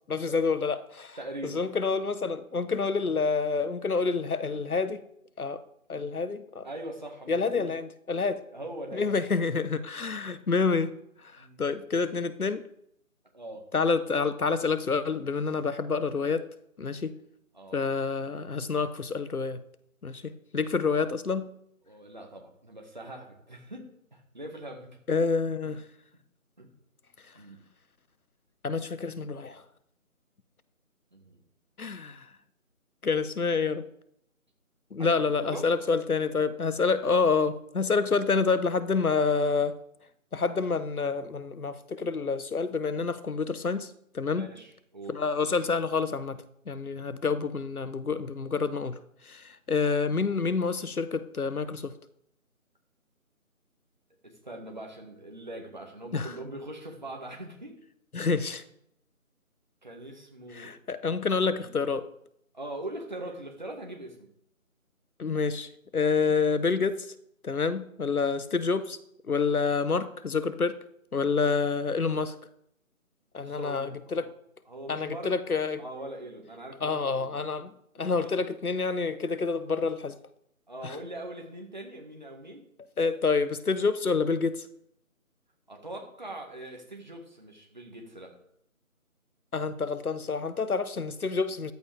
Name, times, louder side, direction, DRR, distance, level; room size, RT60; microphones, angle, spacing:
voice 1, 0.1-1.2 1.4-5.0 5.4-5.6 5.9-6.7 7.3-8.4 8.9-10.9 11.3-12.6 13.7-16.4 16.8-17.2 17.7-19.6 20.0-21.5 25.1-25.8 28.6-29.6 31.8-32.3 33.0-33.8 34.9-39.8 40.3-44.5 45.1-51.9 56.1-56.3 58.1-58.6 60.5-62.1 65.2-67.1 67.4-69.0 69.2-70.8 71.1-72.3 73.3-74.3 74.9-75.8 76.8-77.7 78.0-80.2 80.8-81.0 83.0-84.6 89.5-91.7, left 4 dB, 85° left, 14 dB, 1.2 m, -28 dB
voice 2, 1.2-1.6 6.6-7.7 8.5-9.1 11.4-11.6 13.3-13.7 17.5-17.9 21.9-25.0 26.6-26.7 27.4-27.6 31.1-31.4 35.0-35.7 44.3-45.2 54.2-57.8 59.8-60.8 61.3-61.8 62.5-64.3 73.4-74.3 74.7-75.3 75.8-77.4 78.0-78.3 80.7-82.6 85.7-88.4, right 1 dB, 30° right, 1 dB, 1.8 m, -42 dB
14.0 x 11.0 x 3.5 m, 0.74 s
figure-of-eight pair, 180°, 43 cm